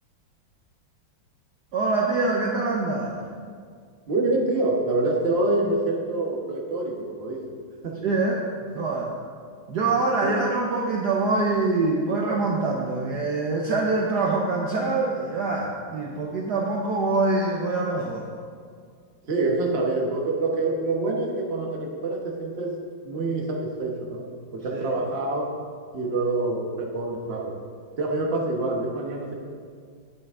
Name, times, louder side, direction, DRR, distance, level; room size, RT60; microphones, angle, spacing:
voice 1, 1.7-3.2 8.0-8.4 8.7-9.1 9.7-18.3 24.7-24.8, right 3 dB, 65° right, -1 dB, 1.2 m, -24 dB
voice 2, 4.1-7.4 7.8-8.0 10.2-10.4 19.3-22.7 23.0-25.5 25.9-27.6 28.0-29.3, right 2 dB, 40° right, -1 dB, 1.1 m, -26 dB
9.0 x 8.7 x 3.6 m, 2.1 s
omnidirectional pair, 2.2 m